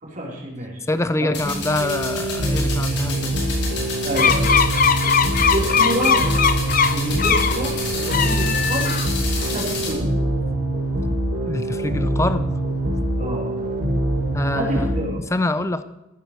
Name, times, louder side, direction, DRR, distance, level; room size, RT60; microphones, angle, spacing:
voice 1, 0.0-0.8 1.2-1.3 4.0-4.5 5.5-6.2 6.9-8.9 9.3-10.2 13.2-13.6 14.5-15.2, right 1 dB, 40° right, -2 dB, 4.0 m, -28 dB
voice 2, 0.9-3.4 11.4-12.5 14.3-14.9 15.3-15.8, left 2 dB, 15° left, 12 dB, 0.5 m, -25 dB
sound 1, 1.3-9.9, left 3 dB, 60° left, 4.4 m, -30 dB
sound 2, 1.4-15.0, right 1 dB, 65° right, 4.6 m, -24 dB
sound 3, 4.2-7.6 8.0-9.2, left 6 dB, 45° left, 0.8 m, -20 dB
14.0 x 9.0 x 6.7 m, 0.96 s
head